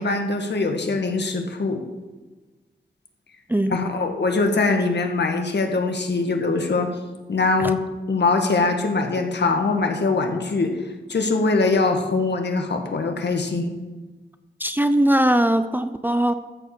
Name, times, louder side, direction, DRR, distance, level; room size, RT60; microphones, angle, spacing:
voice 1, 0.0-1.8 3.7-6.9 7.3-7.8 8.1-10.7 11.1-13.7, left 3 dB, 65° left, 4 dB, 1.6 m, -22 dB
voice 2, 14.6-16.3, right 1 dB, 10° right, 10 dB, 0.6 m, -20 dB
14.0 x 4.6 x 6.9 m, 1.2 s
cardioid pair, 60°, 19 cm